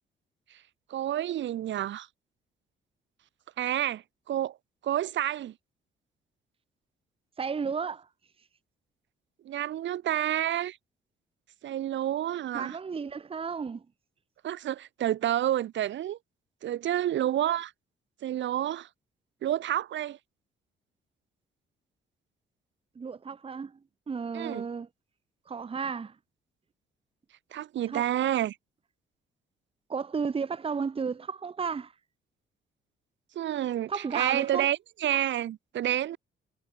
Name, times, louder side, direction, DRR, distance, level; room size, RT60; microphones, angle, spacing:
voice 1, 0.9-2.1 3.6-4.6 4.8-5.5 9.4-10.8 11.6-12.8 14.4-16.2 16.6-17.7 18.2-18.9 19.4-20.2 24.3-24.7 27.5-28.6 33.3-36.2, right 12 dB, 70° right, 1.2 m, -29 dB
voice 2, 7.4-8.1 12.5-13.8 23.0-23.8 24.1-24.9 25.5-26.1 27.9-28.0 29.9-31.9 33.9-34.7, right 5 dB, 30° right, 1.0 m, -33 dB
cardioid pair, 90°, 20 cm